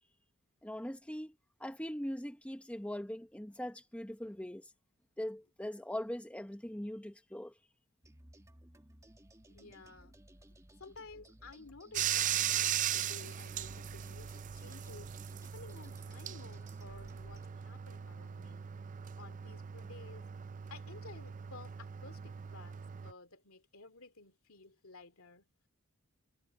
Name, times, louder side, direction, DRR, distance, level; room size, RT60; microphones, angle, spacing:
voice 1, 0.6-1.3 1.6-4.7 5.2-7.5, left 1 dB, 5° left, 1.0 m, -41 dB
sound 1, 8.0-17.5, right 1 dB, 15° right, 1.9 m, -59 dB
voice 2, 9.5-10.2 10.8-18.7 19.1-20.3 20.7-25.5, left 3 dB, 70° left, 2.8 m, -54 dB
Bathtub (filling or washing), 11.9-23.1, right 10 dB, 35° right, 0.4 m, -39 dB
head